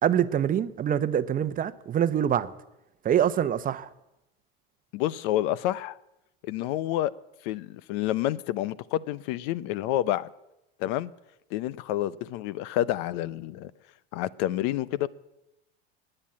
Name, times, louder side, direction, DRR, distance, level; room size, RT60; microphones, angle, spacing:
voice 1, 0.0-2.5 3.0-3.9, right 9 dB, 30° right, 0.8 m, -25 dB
voice 2, 4.9-6.0 6.4-7.1 7.4-10.3 10.8-11.1 11.5-13.7 14.1-15.1, left 14 dB, 60° left, 0.7 m, -28 dB
18.0 x 9.0 x 8.5 m
supercardioid pair, 110°, 29 cm